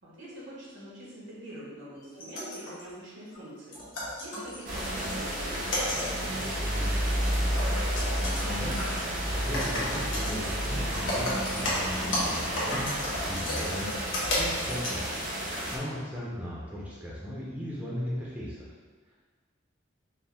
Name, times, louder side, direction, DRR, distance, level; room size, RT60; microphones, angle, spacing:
voice 1, 0.0-7.7, right 1 dB, 75° right, -7 dB, 1.5 m, -45 dB
sound 1, 2.0-2.9 3.3-3.4 3.7-5.3 5.6-6.5 6.9-7.0 7.3-8.4 8.8-9.0 9.4-10.5 10.8-15.0, left 1 dB, 75° left, 1.1 m, -33 dB
sound 2, 4.7-15.8, equal, 45° right, 0.8 m, -31 dB
voice 2, 8.4-13.9 14.4-15.1 15.7-18.7, equal, 10° right, -7 dB, 0.6 m, -37 dB
4.3 x 2.3 x 3.5 m, 1.4 s
head